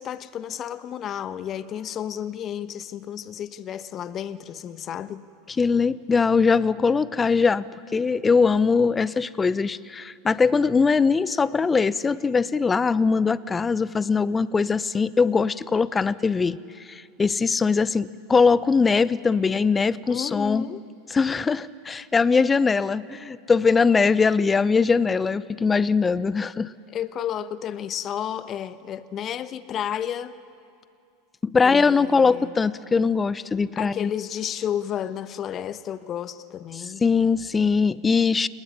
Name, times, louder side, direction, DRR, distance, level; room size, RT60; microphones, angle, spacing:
voice 1, 0.0-5.2 20.1-20.8 26.9-30.4 31.6-32.5 33.8-37.0, left 9 dB, 40° left, 1.2 m, -32 dB
voice 2, 5.6-7.7 7.9-16.6 16.8-20.7 21.1-26.7 31.5-34.1 36.7-38.5, left 5 dB, 20° left, 0.8 m, -21 dB
29.5 x 20.5 x 9.7 m
hypercardioid pair, 85°, 0 cm